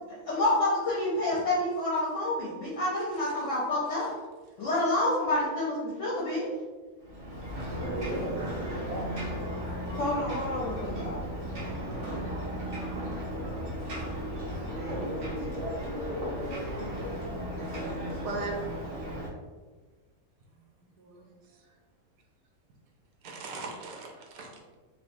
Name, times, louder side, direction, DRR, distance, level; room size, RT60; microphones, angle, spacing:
voice 1, 0.3-4.1 4.6-6.5 10.0-11.2, left 1 dB, 60° left, -6 dB, 0.9 m, -28 dB
Ocean, 7.0-19.3, equal, 50° right, 0.8 m, -35 dB
voice 2, 7.8-9.5 11.7-12.0 14.8-16.9, equal, 65° right, -8 dB, 0.4 m, -37 dB
voice 3, 18.2-18.8 20.5-20.6 21.0-21.8 23.2-24.7, right 3 dB, 90° right, 1 dB, 1.2 m, -39 dB
3.3 x 2.4 x 2.6 m, 1.3 s
omnidirectional pair, 1.6 m